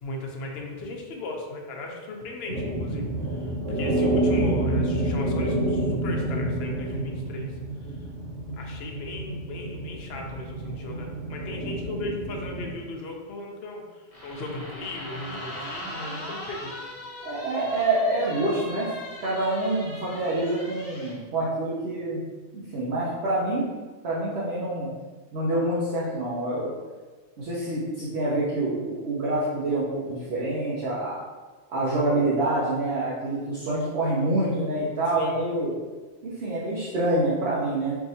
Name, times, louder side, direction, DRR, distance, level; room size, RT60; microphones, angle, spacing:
voice 1, 0.0-7.5 8.6-16.7 35.2-35.4, left 2 dB, 65° left, 1 dB, 0.8 m, -37 dB
sound 1, 2.5-12.7, right 1 dB, 85° right, 1.4 m, -28 dB
sound 2, 14.1-21.2, equal, 35° left, 0.8 m, -39 dB
voice 2, 17.2-18.9 19.2-22.2 22.5-23.6 24.0-24.9 25.3-26.7 27.4-31.2 31.7-35.7 36.2-38.0, right 2 dB, 65° right, -7 dB, 1.0 m, -26 dB
4.7 x 2.6 x 2.7 m, 1.3 s
omnidirectional pair, 1.2 m